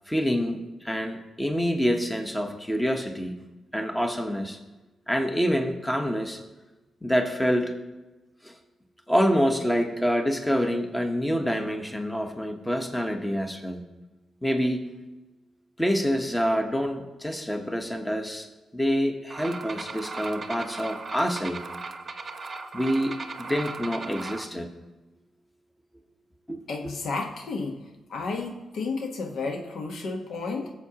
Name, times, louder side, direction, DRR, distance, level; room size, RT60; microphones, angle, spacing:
voice 1, 0.1-3.4 3.7-4.6 5.1-6.4 7.0-7.7 8.4-8.6 9.1-13.8 14.4-14.9 15.8-18.5 18.7-21.6 22.7-24.7 26.5-26.6 26.8-26.9, equal, 10° left, 5 dB, 1.0 m, -26 dB
sound 1, 19.3-24.4, right 4 dB, 40° right, 0.7 m, -37 dB
voice 2, 26.7-27.8 28.1-30.7, left 3 dB, 75° left, 3 dB, 1.1 m, -32 dB
16.0 x 7.2 x 2.9 m, 1.1 s
cardioid pair, 80°, 0 cm